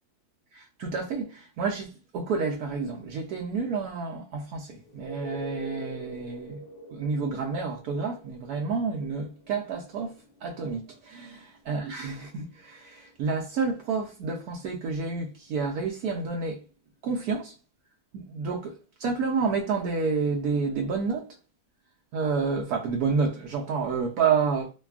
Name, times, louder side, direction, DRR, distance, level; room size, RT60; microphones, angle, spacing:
voice 1, 0.5-16.6 17.0-17.5 18.1-18.7 19.0-21.3 22.1-24.7, right 5 dB, 75° right, 0.8 m, -29 dB
sound 1, 4.8-16.4 20.6-20.7, left 1 dB, 75° left, 1.3 m, -47 dB
3.3 x 2.2 x 2.3 m
omnidirectional pair, 2.1 m